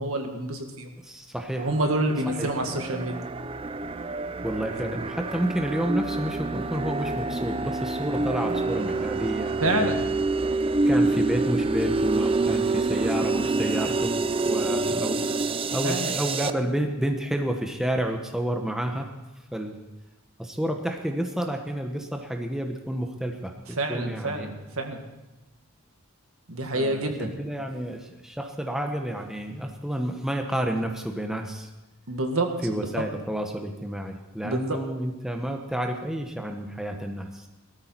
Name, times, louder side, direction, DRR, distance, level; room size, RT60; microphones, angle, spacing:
voice 1, 0.0-0.9 1.6-3.2 9.6-10.0 15.8-16.1 23.8-25.0 26.5-27.3 32.1-32.8 34.4-34.8, right 1 dB, 70° right, 4 dB, 1.9 m, -27 dB
voice 2, 1.0-1.7 2.4-2.5 4.4-9.9 10.9-14.1 14.5-19.1 19.5-19.8 20.4-24.5 26.7-31.7 32.6-37.5, right 1 dB, ahead, 3 dB, 1.0 m, -30 dB
sound 1, 1.6-16.5, right 3 dB, 25° right, 0.4 m, -27 dB
18.0 x 13.5 x 4.5 m, 1.0 s
head